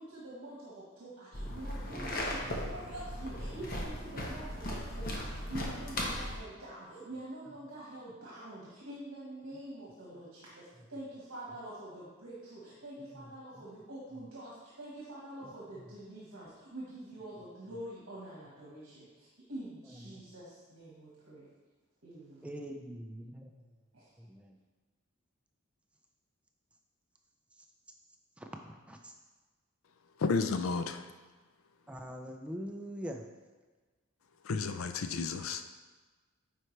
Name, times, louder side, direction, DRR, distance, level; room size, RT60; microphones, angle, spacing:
voice 1, 0.0-21.5 22.0-22.8 23.9-24.1, right 1 dB, 70° right, -6 dB, 1.4 m, -46 dB
sound 1, 1.3-6.4, left 1 dB, 40° left, 1.0 m, -37 dB
voice 2, 22.4-23.7 24.2-24.6 28.4-29.1 31.9-33.2, equal, 5° right, 3 dB, 0.4 m, -43 dB
voice 3, 30.2-31.0 34.4-35.7, left 4 dB, 75° left, 8 dB, 0.5 m, -32 dB
9.3 x 4.4 x 3.2 m, 1.3 s
head